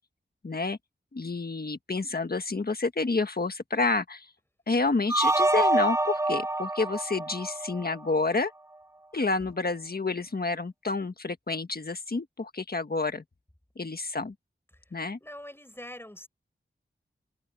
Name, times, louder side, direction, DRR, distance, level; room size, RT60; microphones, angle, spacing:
voice 1, 0.4-0.8 1.1-4.3 4.7-8.5 9.1-13.2 13.7-14.3 14.9-15.2, left 3 dB, 50° left, 1.6 m, -29 dB
sound 1, 5.1-8.2, right 2 dB, 15° right, 0.4 m, -26 dB
voice 2, 15.2-16.3, left 1 dB, 10° left, 6.7 m, -43 dB
wide cardioid pair, 60°, 21 cm